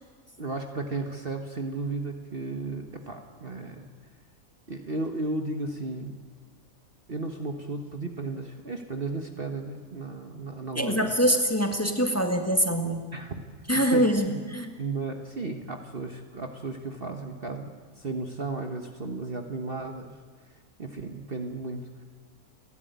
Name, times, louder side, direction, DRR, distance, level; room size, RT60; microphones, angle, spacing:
voice 1, 0.4-3.9 4.7-6.2 7.1-11.1 13.1-13.4 13.7-14.4 14.8-20.1 20.8-22.0, right 3 dB, 40° right, 5 dB, 1.4 m, -34 dB
voice 2, 10.8-13.0 13.7-14.7, equal, 10° left, 4 dB, 1.9 m, -24 dB
30.0 x 12.0 x 9.3 m, 1.5 s
omnidirectional pair, 1.6 m